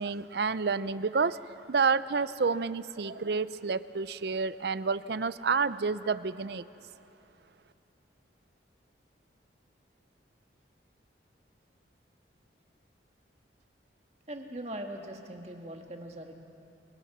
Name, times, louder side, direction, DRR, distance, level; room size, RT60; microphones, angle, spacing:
voice 1, 0.0-1.4 1.7-6.7, right 5 dB, 60° right, 15 dB, 0.5 m, -29 dB
voice 2, 14.3-16.4, right 1 dB, 35° right, 3 dB, 1.6 m, -41 dB
29.5 x 19.0 x 6.0 m, 3.0 s
head